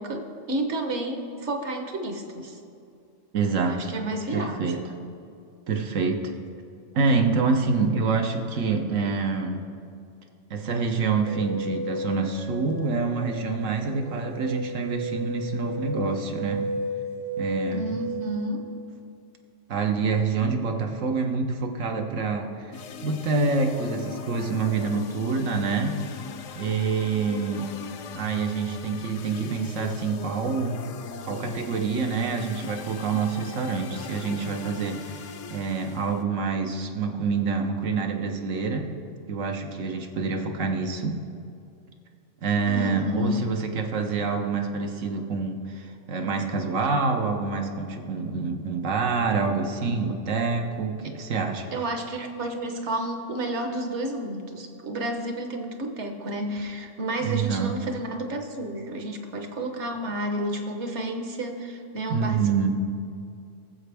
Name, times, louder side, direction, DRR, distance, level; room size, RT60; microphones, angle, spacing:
voice 1, 0.0-2.6 3.6-4.8 17.7-18.7 42.7-43.4 51.7-62.7, right 1 dB, 65° right, 4 dB, 1.3 m, -31 dB
voice 2, 3.3-3.9 4.3-4.8 5.7-6.3 6.9-9.6 10.5-16.7 17.4-18.0 19.7-26.1 26.5-27.7 28.1-30.8 31.2-38.9 39.3-41.2 42.4-51.7 57.2-57.8 62.1-62.7, right 4 dB, 85° right, 3 dB, 1.2 m, -27 dB
sound 1, 11.3-18.4, equal, 45° right, 0.5 m, -33 dB
sound 2, 22.7-36.2, left 6 dB, 75° left, 1.0 m, -39 dB
17.5 x 7.5 x 3.4 m, 2.5 s
omnidirectional pair, 1.3 m